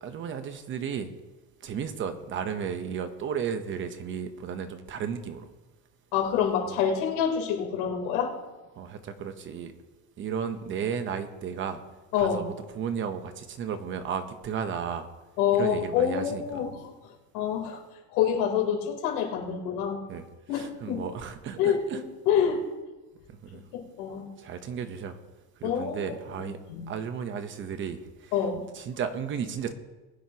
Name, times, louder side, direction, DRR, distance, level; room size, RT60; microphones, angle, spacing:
voice 1, 0.0-1.1 1.6-5.5 6.7-6.8 8.8-9.7 10.2-11.8 12.2-12.4 12.7-15.1 15.5-16.6 20.1-20.2 20.5-22.0 23.3-23.6 24.4-25.2 25.6-26.6 26.9-28.3 28.7-29.7, right 7 dB, 25° right, 9 dB, 0.8 m, -34 dB
voice 2, 6.1-8.3 12.1-12.4 15.4-16.8 17.3-17.8 18.1-20.0 20.5-21.0 21.6-21.8 22.2-22.6 23.7-24.3 25.6-26.0 26.3-26.4 26.7-26.9 28.3-28.6, left 8 dB, 80° left, 0 dB, 3.4 m, -26 dB
21.0 x 9.2 x 2.9 m, 1.2 s
cardioid pair, 165°, 44 cm